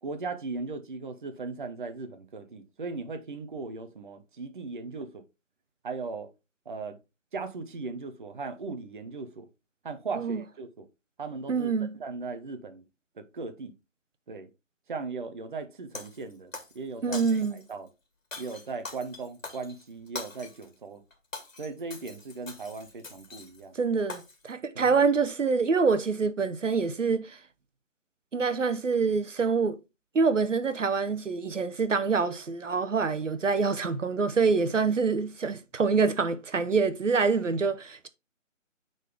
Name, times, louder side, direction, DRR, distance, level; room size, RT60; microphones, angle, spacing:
voice 1, 0.0-5.2 5.8-6.3 6.7-7.0 7.3-9.5 9.8-10.9 11.2-11.7 11.9-12.8 13.2-13.7 14.3-14.5 14.9-17.9 18.4-21.0 21.6-23.8 24.7-25.0, right 4 dB, 40° right, 0.8 m, -38 dB
voice 2, 11.5-12.0 17.0-17.6 23.7-27.4 28.3-29.8 30.1-38.1, right 5 dB, 70° right, 0.9 m, -26 dB
Shatter, 15.9-16.8 17.1-17.7 18.3-20.7 21.1-23.6 24.1-24.5, left 3 dB, 85° left, 2.1 m, -43 dB
9.0 x 4.0 x 3.5 m
figure-of-eight pair, 155°, 38 cm